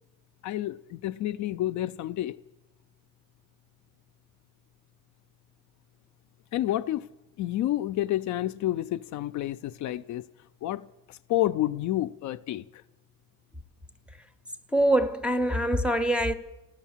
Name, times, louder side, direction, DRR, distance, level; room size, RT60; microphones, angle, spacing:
voice 1, 0.4-2.4 6.5-7.1 7.4-10.3 10.6-12.8, left 14 dB, 60° left, 0.4 m, -29 dB
voice 2, 14.7-16.3, right 1 dB, 5° right, 0.6 m, -24 dB
14.5 x 13.0 x 7.2 m
cardioid pair, 170°, 33 cm